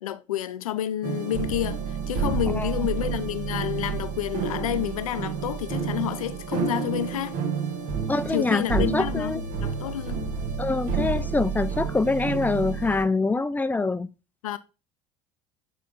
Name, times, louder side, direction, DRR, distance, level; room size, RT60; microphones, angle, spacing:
voice 1, 0.0-7.4 8.3-10.2 14.4-14.6, left 12 dB, 85° left, 0.6 m, -29 dB
sound 1, 1.0-13.0, right 6 dB, 60° right, 1.7 m, -29 dB
voice 2, 8.1-9.4 10.6-14.1, left 3 dB, 10° left, 0.6 m, -25 dB
7.8 x 4.1 x 3.7 m
hypercardioid pair, 75°, 17 cm